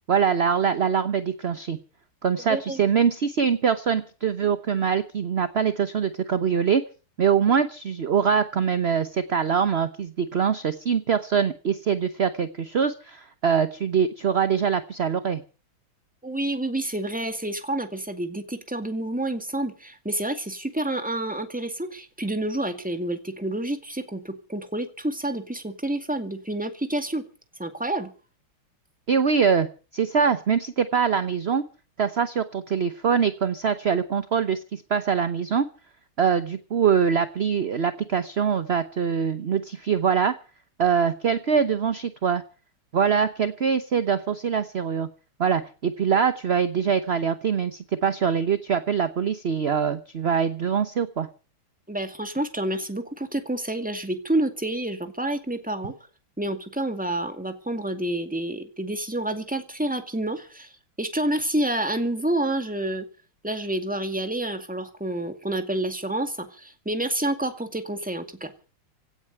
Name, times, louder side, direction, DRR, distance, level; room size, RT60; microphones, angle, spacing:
voice 1, 0.1-1.8 2.2-6.8 7.2-15.4 29.1-29.7 29.9-31.6 32.0-35.7 36.2-40.3 40.8-42.4 42.9-45.1 45.4-51.3, right 7 dB, 45° right, 11 dB, 0.9 m, -23 dB
voice 2, 2.5-2.8 16.2-27.2 27.6-28.1 51.9-55.9 56.4-60.7 61.0-63.1 63.4-68.5, right 1 dB, 5° right, 7 dB, 2.0 m, -28 dB
17.0 x 9.3 x 8.9 m, 0.38 s
omnidirectional pair, 2.3 m